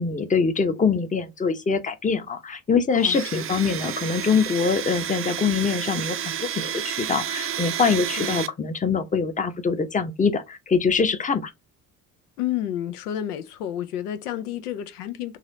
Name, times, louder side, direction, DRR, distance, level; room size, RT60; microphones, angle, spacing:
voice 1, 0.0-11.5, left 5 dB, 15° left, 0.7 m, -24 dB
voice 2, 2.9-3.4 8.2-8.4 12.4-15.4, left 11 dB, 85° left, 0.6 m, -30 dB
Domestic sounds home sounds, 3.0-8.5, right 9 dB, 30° right, 0.5 m, -31 dB
4.1 x 2.5 x 2.6 m
hypercardioid pair, 55°, 45 cm